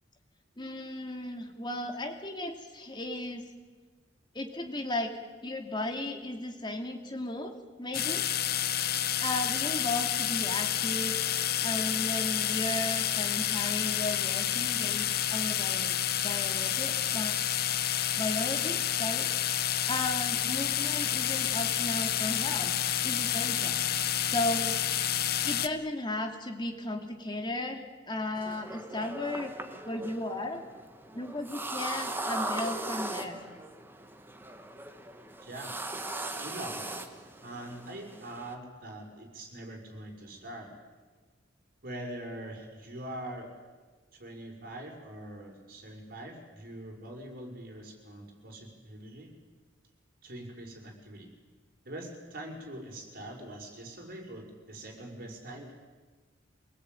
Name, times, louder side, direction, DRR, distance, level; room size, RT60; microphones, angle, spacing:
voice 1, 0.6-3.4 4.3-5.1 5.4-8.2 9.2-11.2 11.6-17.4 18.2-19.3 19.9-22.7 23.0-23.8 24.2-24.7 25.4-27.8 28.1-29.5 29.9-30.6 31.1-33.4, left 1 dB, 25° left, 4 dB, 2.7 m, -35 dB
sound 1, 7.9-25.7, left 10 dB, 55° left, 0.9 m, -29 dB
sound 2, 28.4-38.5, right 2 dB, 10° right, 1.6 m, -39 dB
voice 2, 35.4-35.7 36.3-37.0 37.4-40.7 41.8-43.5 44.1-49.3 50.2-51.3 51.8-55.7, right 1 dB, 50° right, 1 dB, 5.6 m, -43 dB
25.5 x 18.5 x 9.2 m, 1.4 s
head